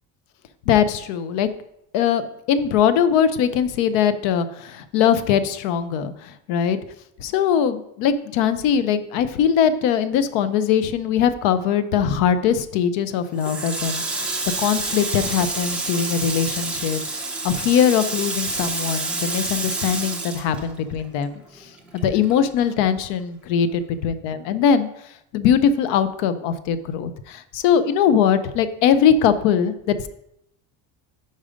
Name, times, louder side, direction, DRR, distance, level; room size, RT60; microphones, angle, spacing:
voice 1, 0.7-1.5 1.9-6.8 7.2-14.3 14.6-17.0 17.4-21.4 21.9-24.9 25.3-30.1, left 8 dB, 75° left, 12 dB, 0.7 m, -21 dB
Water tap faucet, 13.4-21.2 21.5-22.9, right 3 dB, 5° right, 0.4 m, -28 dB
5.5 x 5.0 x 5.0 m, 0.78 s
cardioid pair, 175°, 43 cm